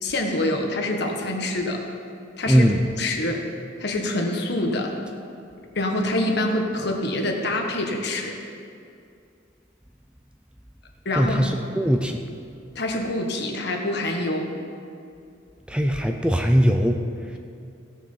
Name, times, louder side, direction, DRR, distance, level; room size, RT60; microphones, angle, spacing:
voice 1, 0.0-1.9 2.4-2.7 3.0-3.5 3.8-4.9 5.7-8.4 11.0-11.5 12.7-14.5, left 1 dB, 65° left, 2 dB, 1.4 m, -26 dB
voice 2, 2.5-2.8 11.2-12.2 15.7-17.4, equal, 5° right, 4 dB, 0.5 m, -20 dB
16.5 x 6.6 x 5.6 m, 2.5 s
head